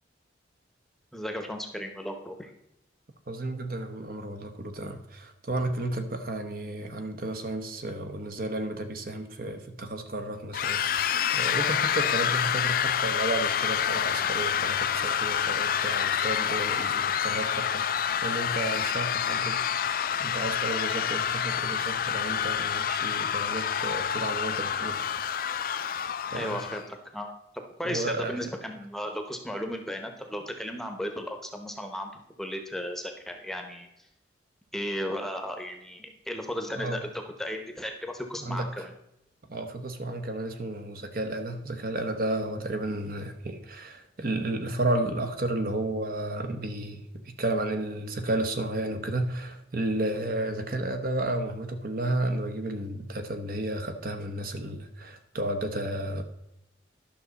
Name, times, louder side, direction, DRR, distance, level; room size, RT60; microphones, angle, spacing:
voice 1, 1.1-2.5 16.8-17.1 26.3-27.3 27.8-32.1 32.4-33.9 34.7-37.1 37.4-38.9, equal, ahead, 4 dB, 0.9 m, -35 dB
voice 2, 3.3-16.9 17.2-19.6 20.2-25.0 26.3-26.6 27.8-28.4 36.7-37.0 38.4-38.7 39.5-56.2, right 1 dB, 50° right, 7 dB, 0.9 m, -32 dB
sound 1, 10.5-26.8, left 8 dB, 50° left, 0.4 m, -28 dB
11.5 x 6.1 x 4.0 m, 0.85 s
head